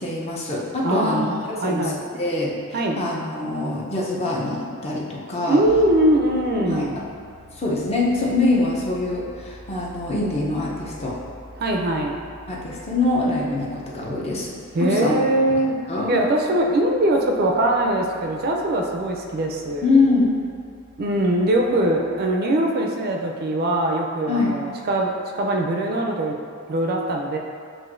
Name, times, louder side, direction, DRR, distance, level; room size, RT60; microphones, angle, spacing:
voice 1, 0.0-1.2 1.6-5.6 6.7-6.8 7.6-11.2 12.5-14.5 14.8-15.1 15.9-16.2 19.8-20.3 24.3-24.5, left 2 dB, 30° left, -4 dB, 0.6 m, -24 dB
voice 2, 0.8-2.1 2.7-3.0 5.5-7.0 11.6-12.2 14.7-15.8 16.1-20.0 21.0-26.4 26.7-27.4, right 1 dB, 45° right, 1 dB, 0.4 m, -22 dB
sound 1, 5.6-22.4, left 1 dB, 55° left, 1.2 m, -47 dB
7.4 x 2.6 x 2.5 m, 2.3 s
head